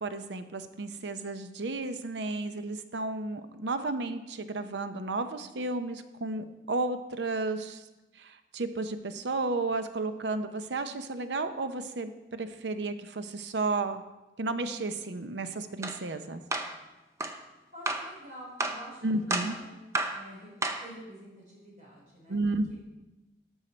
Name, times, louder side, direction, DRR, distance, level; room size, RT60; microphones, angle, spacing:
voice 1, 0.0-7.8 8.2-14.0 14.4-16.4 19.0-19.5 22.3-22.7, right 3 dB, 90° right, 10 dB, 0.7 m, -33 dB
sound 1, 15.8-16.0 16.5-16.7 17.2-17.4 17.9-18.1 18.6-18.8 19.3-19.6 20.0-20.2 20.6-20.9, right 2 dB, 15° right, 0.6 m, -31 dB
voice 2, 17.7-19.7 20.1-20.5 20.8-22.8, equal, 45° right, -5 dB, 3.8 m, -48 dB
12.5 x 6.4 x 4.3 m, 1.0 s
head